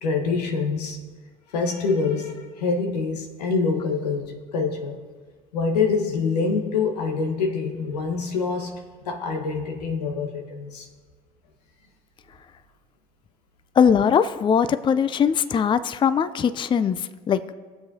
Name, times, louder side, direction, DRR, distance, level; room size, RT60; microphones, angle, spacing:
voice 1, 0.0-1.0 1.5-5.0 5.5-8.8 9.1-10.9, left 4 dB, 90° left, 3 dB, 1.1 m, -25 dB
voice 2, 13.8-17.5, left 7 dB, 25° left, 13 dB, 0.4 m, -21 dB
18.0 x 7.7 x 2.8 m, 1.5 s
hypercardioid pair, 70°, 20 cm